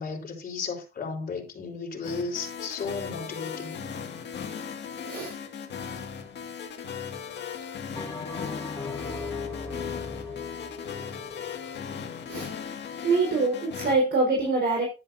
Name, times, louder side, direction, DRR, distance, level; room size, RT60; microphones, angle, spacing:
voice 1, 0.0-3.8, left 4 dB, 45° left, 4.4 m, -34 dB
sound 1, 2.0-13.9, left 7 dB, 60° left, 1.9 m, -37 dB
voice 2, 5.0-5.4 12.3-12.5 13.0-14.9, right 3 dB, 60° right, 4.0 m, -24 dB
Bell, 8.0-12.6, left 4 dB, 15° left, 3.4 m, -38 dB
11.5 x 10.0 x 2.6 m
cardioid pair, 90°, 20 cm